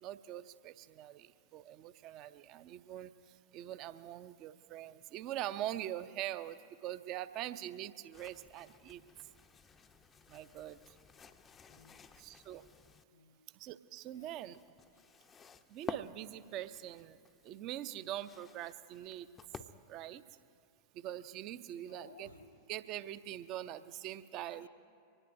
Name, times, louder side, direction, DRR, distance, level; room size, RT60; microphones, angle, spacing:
voice 1, 0.0-3.1 3.5-9.0 10.3-10.8 12.2-12.6 13.6-14.6 15.7-17.2 17.4-19.3 19.9-20.2 21.0-22.3 22.7-24.7, right 12 dB, 40° right, 14 dB, 0.5 m, -43 dB
sound 1, 8.1-13.0 14.1-20.1, left 6 dB, 20° left, 0.5 m, -52 dB
voice 2, 11.7-12.2 13.1-13.5 14.0-14.4 14.9-15.0 21.7-22.5 23.9-24.0 24.4-24.7, left 5 dB, 65° left, 8 dB, 1.0 m, -60 dB
24.5 x 19.5 x 2.6 m, 2.4 s
figure-of-eight pair, 90°, 0 cm